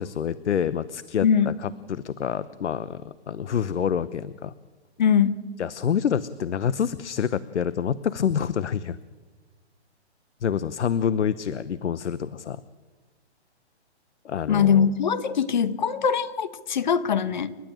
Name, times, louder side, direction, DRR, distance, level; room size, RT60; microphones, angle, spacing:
voice 1, 0.0-4.5 5.6-9.0 10.4-12.6 14.2-14.9, left 8 dB, 80° left, 17 dB, 1.0 m, -27 dB
voice 2, 1.2-1.5 5.0-5.4 14.5-17.6, left 7 dB, 40° left, 15 dB, 1.2 m, -22 dB
29.5 x 12.5 x 9.0 m, 1.3 s
hypercardioid pair, 170°, 34 cm